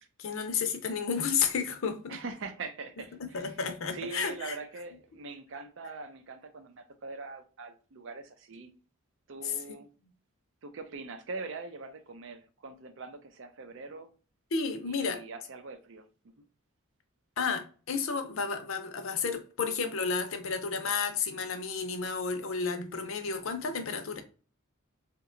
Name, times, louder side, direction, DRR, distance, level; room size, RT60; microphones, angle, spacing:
voice 1, 0.2-2.2 3.3-4.6 9.4-9.6 14.5-15.2 17.4-24.2, left 5 dB, 65° left, 0.6 m, -32 dB
voice 2, 2.1-3.6 3.9-8.7 9.3-9.9 10.6-14.1 14.8-16.0, right 4 dB, 65° right, 0.5 m, -42 dB
2.8 x 2.2 x 3.7 m
head